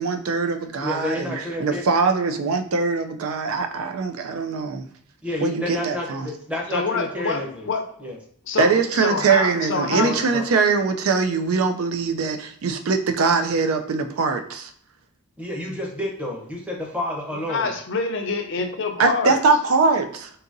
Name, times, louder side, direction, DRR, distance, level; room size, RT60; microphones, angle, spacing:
voice 1, 0.0-4.8 5.4-6.3 8.6-14.7 19.0-20.3, right 4 dB, 70° right, 7 dB, 0.4 m, -22 dB
voice 2, 0.8-1.8 5.2-7.7 8.0-8.2 9.9-10.4 15.4-17.7, left 1 dB, 5° right, -2 dB, 0.8 m, -30 dB
voice 3, 6.7-7.8 8.5-10.2 17.5-19.4, left 4 dB, 60° left, 4 dB, 0.6 m, -26 dB
3.8 x 2.8 x 2.6 m, 0.62 s
head